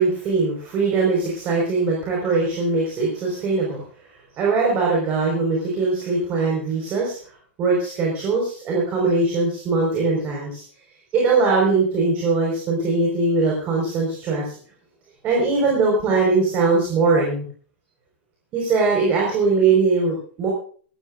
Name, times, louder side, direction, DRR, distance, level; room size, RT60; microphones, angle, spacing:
voice 1, 0.0-3.8 4.3-7.2 7.6-10.6 11.1-14.5 15.2-17.5 18.5-20.5, right 3 dB, 25° right, -2 dB, 5.1 m, -21 dB
21.5 x 14.0 x 2.6 m, 0.43 s
supercardioid pair, 170°, 7 cm